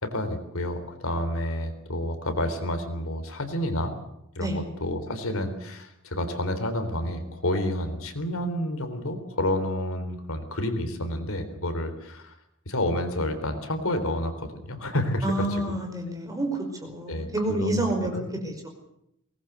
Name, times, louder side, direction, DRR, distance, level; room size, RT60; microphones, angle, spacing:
voice 1, 0.0-4.0 4.4-12.4 12.7-15.6 17.1-18.3, left 1 dB, 65° left, 8 dB, 3.7 m, -29 dB
voice 2, 15.2-18.1 18.4-18.7, right 1 dB, 15° right, 3 dB, 5.2 m, -28 dB
22.5 x 19.5 x 8.2 m, 0.78 s
head